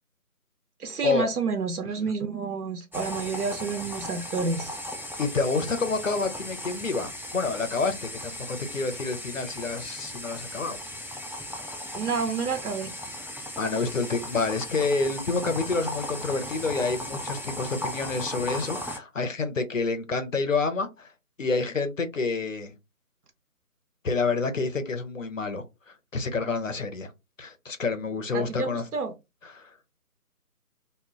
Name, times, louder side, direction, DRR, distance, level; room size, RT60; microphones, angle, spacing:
voice 1, 0.8-4.8 11.9-12.9 28.3-29.1, right 4 dB, 70° right, 0.5 m, -29 dB
sound 1, 2.9-19.0, left 1 dB, 5° right, 0.3 m, -37 dB
voice 2, 5.2-7.1 7.3-10.8 13.6-21.1 21.4-22.7 24.0-25.6 26.1-27.1 27.4-28.8 29.5-29.7, left 4 dB, 55° left, 0.6 m, -28 dB
2.1 x 2.0 x 3.5 m
figure-of-eight pair, 175°, 46 cm